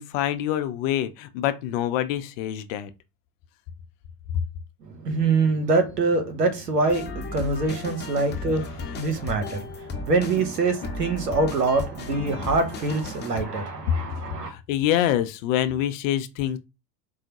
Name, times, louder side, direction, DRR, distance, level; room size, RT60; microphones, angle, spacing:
voice 1, 0.0-2.9 8.6-8.7 14.5-16.6, left 12 dB, 55° left, 0.6 m, -26 dB
voice 2, 4.8-14.5, right 3 dB, 85° right, 1.0 m, -25 dB
sound 1, 6.9-13.4, left 3 dB, 20° left, 0.7 m, -35 dB
4.6 x 2.0 x 2.9 m
figure-of-eight pair, 75°, 47 cm